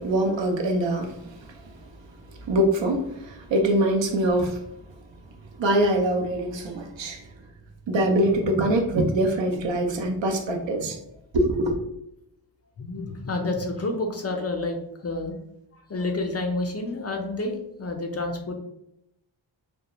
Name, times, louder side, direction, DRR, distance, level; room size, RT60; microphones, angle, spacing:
voice 1, 0.0-1.7 2.4-4.6 5.6-7.2 7.9-11.0 11.3-11.8, right 1 dB, 70° right, 0.6 m, -24 dB
voice 2, 12.8-14.8 15.0-15.4 15.9-18.5, left 2 dB, 35° left, 0.5 m, -29 dB
2.3 x 2.1 x 2.9 m
cardioid pair, 55°, 47 cm